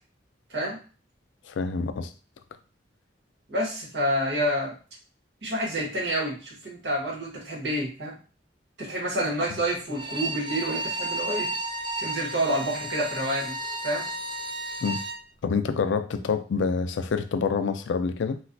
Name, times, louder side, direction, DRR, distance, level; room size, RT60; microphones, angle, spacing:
voice 1, 1.5-2.1 14.8-15.0 15.4-18.4, left 5 dB, 90° left, 10 dB, 0.4 m, -27 dB
voice 2, 3.5-4.7 5.4-8.2 8.8-11.5 12.0-13.5 13.8-14.1, right 1 dB, 70° right, -3 dB, 1.4 m, -28 dB
Bowed string instrument, 9.9-15.2, right 2 dB, 25° right, 0.3 m, -33 dB
4.0 x 2.4 x 2.6 m, 0.36 s
head